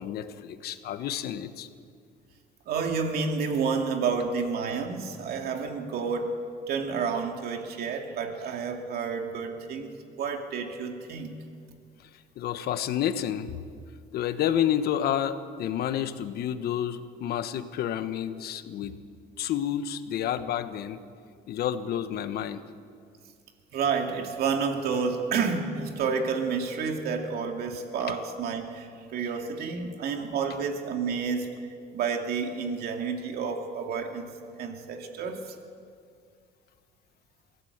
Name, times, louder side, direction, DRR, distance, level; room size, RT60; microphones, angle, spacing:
voice 1, 0.0-1.7 12.4-13.5 14.1-19.0 19.4-21.0 21.5-22.6, left 10 dB, 70° left, 10 dB, 1.2 m, -29 dB
voice 2, 2.7-6.4 6.7-9.9 10.2-11.3 23.7-31.5 31.9-34.2 34.6-35.4, right 5 dB, 70° right, 3 dB, 2.6 m, -30 dB
23.5 x 16.0 x 8.1 m, 2.2 s
cardioid pair, 110°, 17 cm